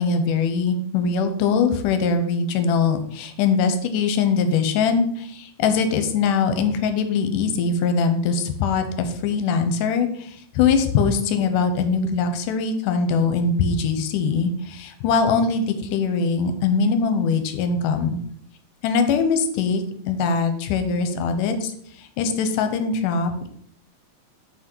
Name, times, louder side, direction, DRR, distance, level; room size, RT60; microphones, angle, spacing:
voice 1, 0.0-18.2 18.8-21.7 22.0-23.5, left 5 dB, 80° left, 8 dB, 2.2 m, -22 dB
6.1 x 5.0 x 4.5 m, 0.65 s
omnidirectional pair, 3.9 m